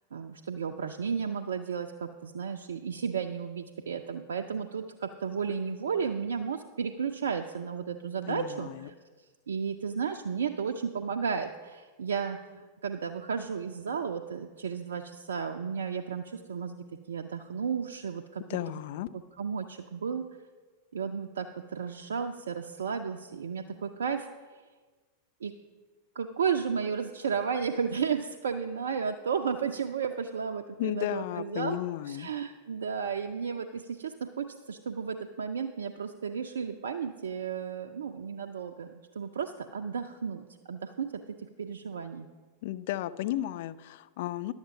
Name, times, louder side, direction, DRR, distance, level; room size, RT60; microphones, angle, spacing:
voice 1, 0.1-8.9 9.5-18.8 19.4-20.2 20.9-24.3 25.4-25.5 26.2-31.8 32.1-41.1 41.6-42.3, right 6 dB, 65° right, 4 dB, 0.4 m, -33 dB
voice 2, 8.3-8.9 18.5-19.1 30.8-32.3 42.6-44.5, left 14 dB, 50° left, 11 dB, 0.4 m, -34 dB
11.5 x 7.2 x 5.5 m, 1.4 s
figure-of-eight pair, 90°, 0 cm